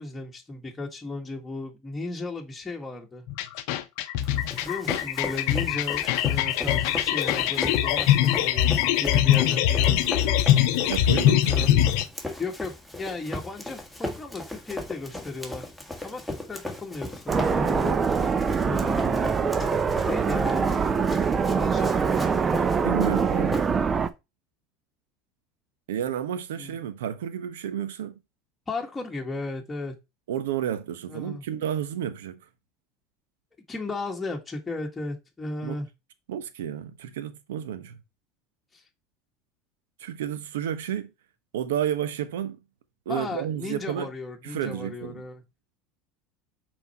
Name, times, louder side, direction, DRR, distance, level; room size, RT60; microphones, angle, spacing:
voice 1, 0.0-3.3 4.6-10.7 11.5-11.7 12.4-15.7 16.0-18.0 18.6-19.7 20.0-20.8 21.5-22.7 26.6-26.7 28.7-29.9 31.1-31.4 33.7-35.9 38.7-38.8 43.1-45.4, left 3 dB, 15° left, 1.6 m, -35 dB
sound 1, 3.3-12.1, left 12 dB, 65° left, 0.7 m, -22 dB
Run, 4.2-24.1, left 1 dB, ahead, 1.8 m, -37 dB
voice 2, 10.8-11.9 22.8-23.7 25.9-28.1 30.3-32.4 35.6-35.8 36.3-37.9 40.0-41.1 41.5-42.6 43.1-44.1 44.4-45.2, right 10 dB, 80° right, 0.8 m, -31 dB
sound 2, 17.3-24.1, right 6 dB, 30° right, 0.7 m, -24 dB
5.7 x 4.5 x 4.3 m
hypercardioid pair, 80°, 0 cm